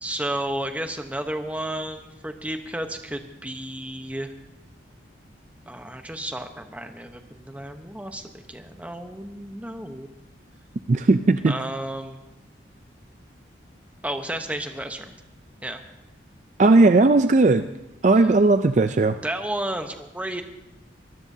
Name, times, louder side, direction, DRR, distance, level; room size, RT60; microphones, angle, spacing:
voice 1, 0.0-4.3 5.7-10.1 11.5-12.2 14.0-15.1 15.6-15.8 19.2-20.4, right 1 dB, 10° right, 6 dB, 0.9 m, -32 dB
voice 2, 10.9-11.5 16.6-17.6 18.0-19.1, right 3 dB, 40° right, 9 dB, 0.4 m, -17 dB
24.0 x 14.5 x 2.8 m, 0.93 s
head